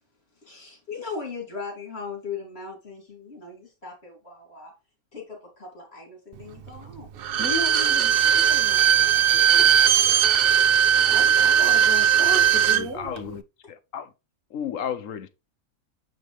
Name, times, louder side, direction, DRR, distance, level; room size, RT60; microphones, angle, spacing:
voice 1, 0.4-4.7 5.1-7.1 9.6-10.2 10.4-10.7, left 5 dB, 45° left, 3.1 m, -39 dB
Bowed string instrument, 7.2-12.8 13.2-13.3, right 9 dB, 65° right, 0.5 m, -19 dB
voice 2, 7.4-9.8 11.0-13.1, equal, 80° right, 2.4 m, -35 dB
voice 3, 12.7-13.4 13.7-14.1 14.5-15.3, left 8 dB, 65° left, 1.0 m, -33 dB
7.5 x 5.1 x 3.1 m
omnidirectional pair, 1.5 m